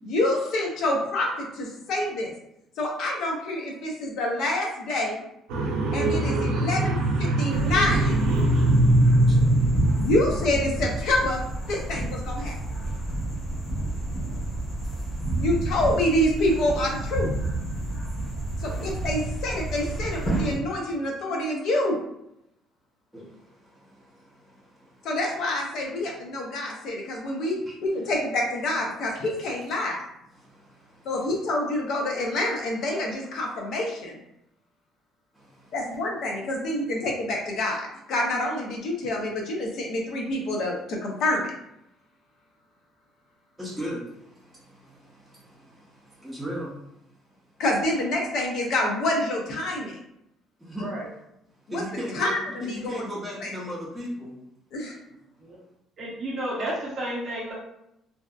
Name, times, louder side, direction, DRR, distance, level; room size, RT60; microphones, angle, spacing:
voice 1, 0.0-2.3 2.8-5.2 5.9-8.2 10.0-11.4 11.7-12.5 15.4-17.3 18.6-22.0 25.0-30.0 31.0-34.2 35.7-37.8 38.1-41.5 47.6-50.0 51.7-51.8 52.1-53.0 53.4-53.5 54.7-55.0, left 1 dB, 60° left, 0 dB, 0.6 m, -27 dB
sound 1, 5.5-10.8, right 1 dB, 85° right, 0.4 m, -22 dB
sound 2, 7.5-20.6, right 2 dB, 30° left, 1.0 m, -30 dB
voice 2, 9.3-10.1 12.5-15.5 18.5-18.6 23.1-25.1 27.6-27.8 29.7-29.8 30.3-31.1 35.3-35.8 43.6-46.8 47.3-47.4 50.6-50.9 51.6-52.3 52.6-54.3 55.1-55.2, equal, ahead, -8 dB, 0.6 m, -39 dB
voice 3, 56.0-57.5, right 1 dB, 45° right, -4 dB, 0.6 m, -32 dB
2.7 x 2.3 x 2.3 m, 0.80 s
cardioid pair, 155°, 0 cm